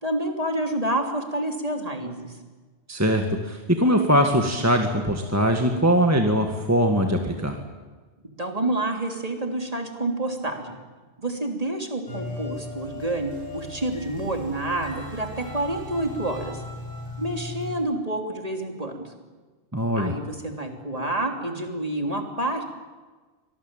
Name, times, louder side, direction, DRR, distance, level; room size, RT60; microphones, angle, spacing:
voice 1, 0.0-2.4 8.4-10.8 11.2-16.6 17.2-19.1 20.0-22.6, right 1 dB, 35° right, 3 dB, 3.3 m, -28 dB
voice 2, 2.9-7.6 19.7-20.1, equal, 15° right, 3 dB, 1.8 m, -21 dB
Machine Music Box, 12.1-17.7, left 1 dB, 50° left, 8.2 m, -37 dB
25.0 x 20.0 x 9.0 m, 1.4 s
omnidirectional pair, 1.1 m